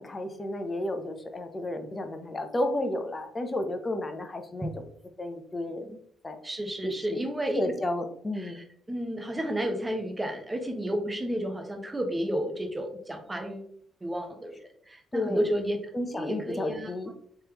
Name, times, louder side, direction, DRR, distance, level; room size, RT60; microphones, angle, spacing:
voice 1, 0.0-4.7 5.2-6.0 6.2-6.4 6.8-7.3 7.6-8.6 15.1-15.5 15.9-17.1, left 1 dB, 25° left, 7 dB, 0.6 m, -32 dB
voice 2, 6.4-7.6 8.4-13.7 14.0-15.8 16.1-16.9, right 1 dB, 15° right, 4 dB, 0.9 m, -32 dB
3.6 x 3.1 x 2.9 m, 0.64 s
cardioid pair, 90°, 0 cm